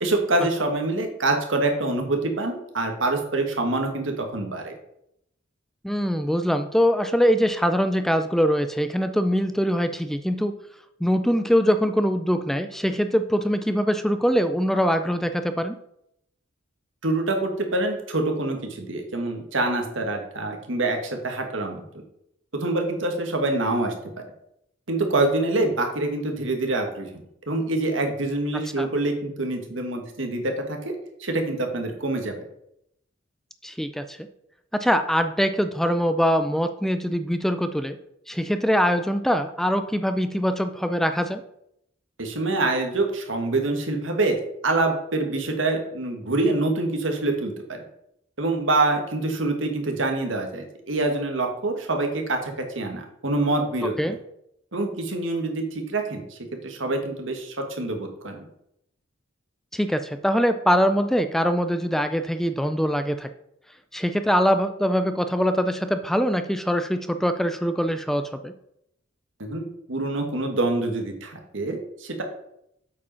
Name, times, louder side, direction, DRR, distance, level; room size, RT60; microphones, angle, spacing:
voice 1, 0.0-4.7 17.0-21.8 22.5-24.2 24.9-27.1 27.5-31.0 31.2-32.4 42.2-47.8 48.4-54.2 54.7-56.4 56.6-58.5 69.4-72.2, right 2 dB, 70° right, 3 dB, 1.8 m, -26 dB
voice 2, 5.8-10.5 11.0-15.7 28.8-28.9 33.6-34.2 34.7-38.0 38.3-41.4 54.0-54.2 59.7-63.3 63.9-68.5, equal, ahead, 9 dB, 0.4 m, -23 dB
8.2 x 5.2 x 5.6 m, 0.77 s
head